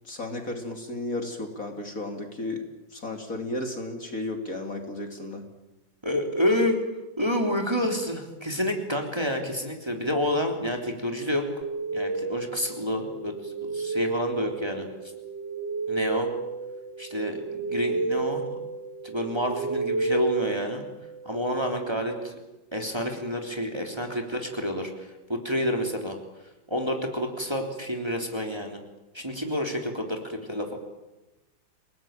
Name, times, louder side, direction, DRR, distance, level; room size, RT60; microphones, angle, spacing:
voice 1, 0.0-2.6 2.9-5.4, left 2 dB, 45° left, 4 dB, 3.3 m, -33 dB
voice 2, 6.0-6.8 7.2-11.5 11.9-14.9 15.9-16.3 17.0-18.6 19.0-20.8 21.3-22.4 22.7-26.2 26.7-28.8 29.1-30.8, equal, 15° right, 3 dB, 3.5 m, -29 dB
sound 1, 11.6-21.3, right 3 dB, 40° right, 1.4 m, -31 dB
29.5 x 18.5 x 9.0 m, 1.0 s
omnidirectional pair, 2.1 m